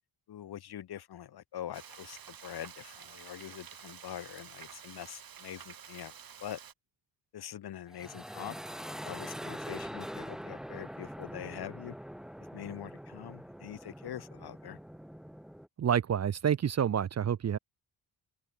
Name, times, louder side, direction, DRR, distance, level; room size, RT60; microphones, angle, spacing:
voice 1, 0.3-6.1 6.4-6.6 7.3-8.6 9.0-11.9 12.5-14.8, left 11 dB, 60° left, 1.6 m, -44 dB
Frying (food), 1.7-6.7, right 8 dB, 55° right, 3.7 m, -50 dB
sound 1, 7.9-15.7, equal, ahead, 1.1 m, -43 dB
voice 2, 15.8-17.6, right 8 dB, 40° right, 0.7 m, -28 dB
open air
cardioid pair, 95°, 42 cm